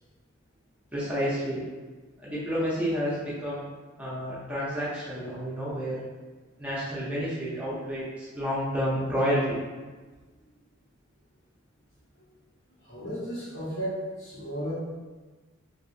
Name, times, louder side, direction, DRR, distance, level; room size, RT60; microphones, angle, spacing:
voice 1, 0.9-1.7 2.2-3.6 4.0-6.0 6.6-9.6, equal, 5° right, -9 dB, 0.6 m, -30 dB
voice 2, 12.8-14.7, equal, 75° left, -10 dB, 1.3 m, -34 dB
2.9 x 2.5 x 2.7 m, 1.3 s
head